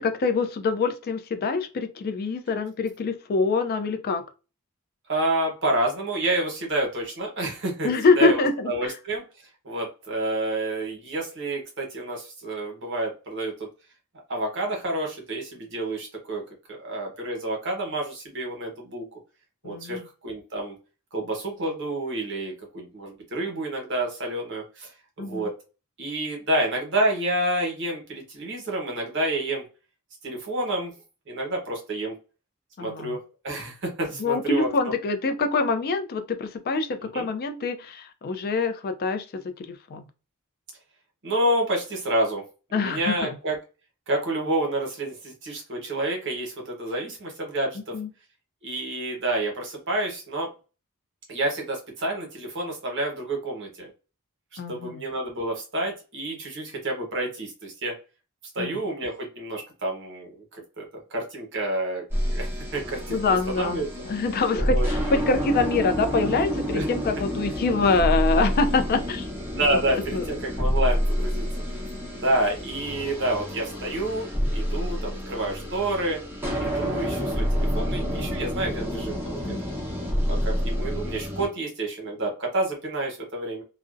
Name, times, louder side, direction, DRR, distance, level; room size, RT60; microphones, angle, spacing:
voice 1, 0.0-4.2 7.8-8.9 19.6-20.1 25.2-25.5 32.8-33.2 34.2-39.2 39.6-40.0 42.7-43.4 47.9-48.1 54.6-55.0 58.6-58.8 63.1-69.3 69.5-69.8 70.1-70.2 79.4-79.6, left 4 dB, 45° left, 0.3 m, -25 dB
voice 2, 5.1-9.2 9.6-13.7 14.3-16.4 16.7-19.1 19.6-20.8 21.1-24.9 25.2-25.5 26.0-29.6 30.2-30.9 31.3-32.1 32.8-34.7 37.1-37.3 41.2-42.4 42.7-43.5 44.1-47.9 48.6-50.5 51.3-53.9 54.7-58.0 58.5-63.9 64.5-65.2 66.7-66.8 69.6-71.4 72.1-76.2 76.6-79.6 80.3-83.6, right 1 dB, 55° right, 1.0 m, -29 dB
sound 1, 62.1-81.5, equal, 10° right, 0.8 m, -28 dB
2.5 x 2.0 x 2.4 m
head